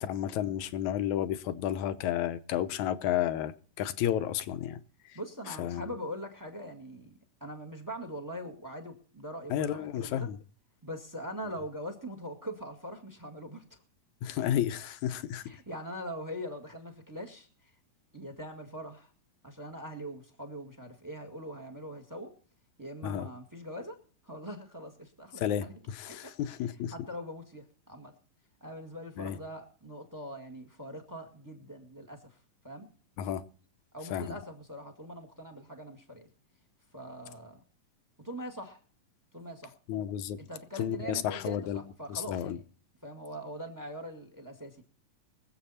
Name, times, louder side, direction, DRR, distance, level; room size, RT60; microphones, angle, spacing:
voice 1, 0.0-4.8 5.1-5.2 5.5-5.9 9.5-10.4 14.2-15.4 23.0-23.3 25.4-26.9 29.2-29.4 33.2-33.4 34.1-34.4 39.9-40.4 40.8-41.8 42.1-42.6, left 11 dB, 70° left, 2.0 m, -32 dB
voice 2, 5.1-7.1 7.4-10.3 10.8-13.6 15.4-17.5 18.1-19.1 19.4-22.3 22.8-24.0 24.2-25.7 26.1-26.3 26.9-28.1 28.6-32.4 32.6-32.9 33.9-36.3 36.9-37.6 38.2-38.8 39.3-39.7 40.4-42.6 43.0-44.8, equal, 10° right, 1.0 m, -42 dB
24.0 x 8.0 x 4.3 m
omnidirectional pair, 3.9 m